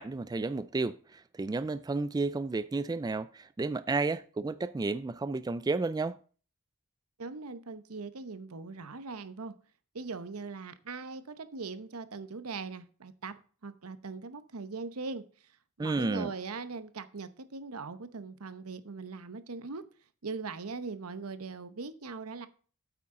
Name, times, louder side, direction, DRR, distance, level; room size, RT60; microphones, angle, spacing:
voice 1, 0.0-6.2 15.8-16.3, right 3 dB, 20° right, 0.3 m, -32 dB
voice 2, 7.2-9.5 9.9-19.8 20.2-22.5, right 4 dB, 85° right, 0.9 m, -40 dB
8.5 x 8.5 x 3.7 m
head